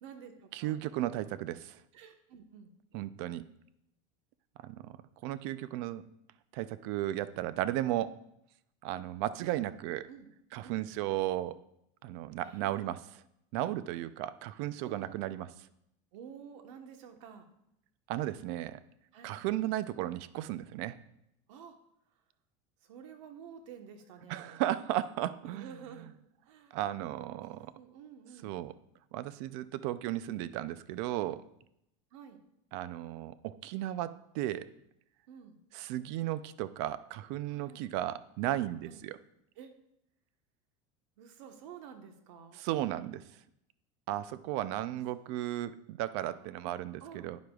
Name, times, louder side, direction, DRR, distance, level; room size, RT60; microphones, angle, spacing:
voice 1, 0.0-0.8 1.1-1.3 1.9-2.7 9.4-9.6 10.1-10.3 10.6-10.9 12.4-13.0 14.6-15.2 16.1-17.5 19.1-19.4 21.5-21.8 22.8-24.6 25.4-26.1 26.4-26.8 27.4-28.6 32.1-32.4 35.3-35.6 37.5-37.8 38.9-39.0 39.6-39.7 41.2-42.6 45.2-45.4 46.2-47.4, right 7 dB, 80° right, 6 dB, 1.3 m, -51 dB
voice 2, 0.5-1.8 2.9-3.4 4.6-4.9 5.2-6.0 6.5-8.1 8.8-10.1 10.5-11.6 12.0-13.2 13.5-15.5 18.1-18.8 19.2-21.0 24.3-26.1 26.7-27.7 28.4-28.7 29.1-31.4 32.7-34.7 35.7-39.2 42.5-43.2 44.1-47.4, right 14 dB, 65° right, 15 dB, 0.5 m, -35 dB
11.5 x 9.4 x 2.4 m, 0.79 s
supercardioid pair, 150°, 16 cm